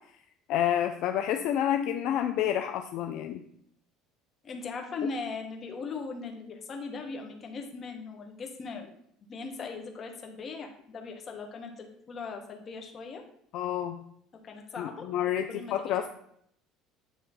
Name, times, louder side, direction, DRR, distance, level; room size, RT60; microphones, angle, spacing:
voice 1, 0.5-3.4 13.5-14.0 14.8-16.1, left 10 dB, 65° left, 6 dB, 0.4 m, -29 dB
voice 2, 4.4-8.9 9.2-13.2 14.4-15.1 15.5-16.1, left 4 dB, 35° left, 3 dB, 1.2 m, -39 dB
9.1 x 3.1 x 4.1 m, 0.70 s
cardioid pair, 125°, 0 cm